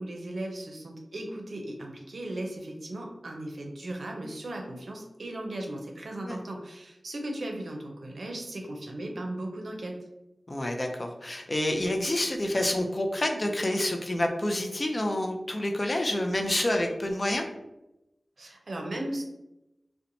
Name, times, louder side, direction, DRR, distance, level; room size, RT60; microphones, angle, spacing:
voice 1, 0.0-10.0 18.4-19.2, right 1 dB, 80° right, 2 dB, 0.5 m, -37 dB
voice 2, 10.5-17.4, left 1 dB, 35° left, 3 dB, 0.4 m, -28 dB
2.8 x 2.1 x 2.6 m, 0.92 s
wide cardioid pair, 70°, 0 cm